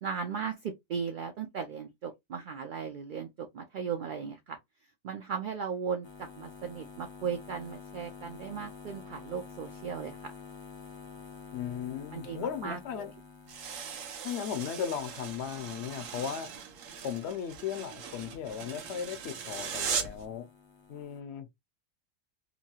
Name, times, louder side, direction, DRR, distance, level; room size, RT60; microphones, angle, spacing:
voice 1, 0.0-4.6 5.0-10.3 12.1-13.1, right 6 dB, 65° right, 0.5 m, -37 dB
sound 1, 6.0-17.3 17.5-21.2, left 5 dB, 35° left, 0.4 m, -50 dB
voice 2, 11.5-13.1 14.2-16.5 17.0-20.5 20.9-21.5, left 8 dB, 65° left, 0.8 m, -36 dB
sound 2, 13.5-20.3, right 6 dB, 85° right, 1.1 m, -39 dB
2.9 x 2.3 x 2.7 m
omnidirectional pair, 1.3 m